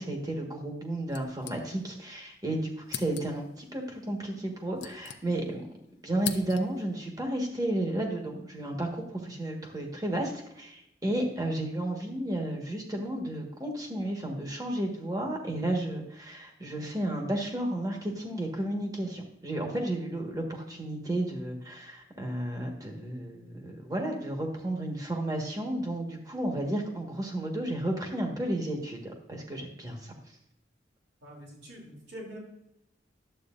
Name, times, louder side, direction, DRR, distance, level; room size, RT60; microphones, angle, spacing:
voice 1, 0.0-5.7 6.0-30.1, right 1 dB, 20° right, 1 dB, 1.5 m, -32 dB
sound 1, 1.1-2.1 2.4-2.5 2.9-3.6 4.4-5.7 5.9-6.9, left 9 dB, 70° left, 0.7 m, -41 dB
voice 2, 31.2-32.4, equal, 70° right, -3 dB, 3.1 m, -45 dB
11.5 x 8.1 x 2.6 m, 0.81 s
head